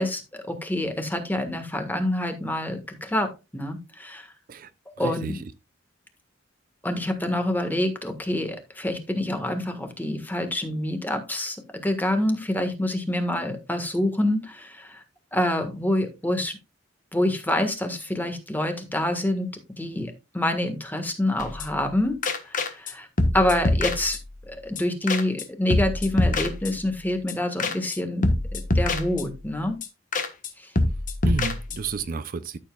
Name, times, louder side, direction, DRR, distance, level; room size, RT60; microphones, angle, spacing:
voice 1, 0.0-4.3 5.0-5.4 6.8-11.6 11.8-15.0 15.3-16.6 17.1-19.5 19.8-22.2 22.4-23.1 23.3-24.2 24.5-29.8 30.6-30.7, left 1 dB, 10° left, 1.5 m, -27 dB
voice 2, 5.0-5.3 31.2-32.6, right 4 dB, 45° right, 0.5 m, -31 dB
sound 1, 21.4-21.9 22.2-22.9 23.2-24.5 24.8-24.9 25.1-25.4 25.7-27.0 27.3-27.4 27.6-28.0 28.2-29.5 29.8-29.9 30.1-30.5 30.8-32.0, left 2 dB, 40° left, 1.3 m, -25 dB
12.5 x 7.2 x 2.3 m
head